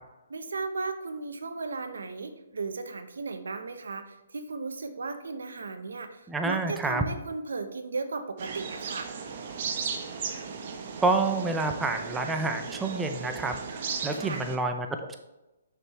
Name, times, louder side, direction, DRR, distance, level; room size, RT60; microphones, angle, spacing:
voice 1, 0.3-9.1 14.1-14.4, right 4 dB, 80° right, 8 dB, 0.8 m, -36 dB
voice 2, 6.3-7.0 11.0-15.2, right 3 dB, 10° right, 5 dB, 0.5 m, -28 dB
sound 1, 8.4-14.6, right 5 dB, 50° right, 0.9 m, -36 dB
6.6 x 6.1 x 3.1 m, 1.0 s
hypercardioid pair, 140°, 0 cm